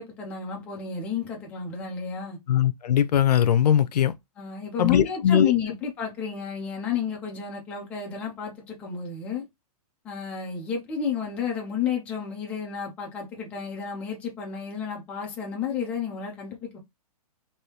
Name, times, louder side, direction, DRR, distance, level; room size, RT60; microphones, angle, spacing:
voice 1, 0.0-2.4 4.4-9.4 10.0-16.8, left 7 dB, 5° left, 0.4 m, -31 dB
voice 2, 2.5-4.1 4.8-5.5, left 10 dB, 90° left, 0.5 m, -20 dB
3.4 x 2.7 x 2.8 m
hypercardioid pair, 170°, 20 cm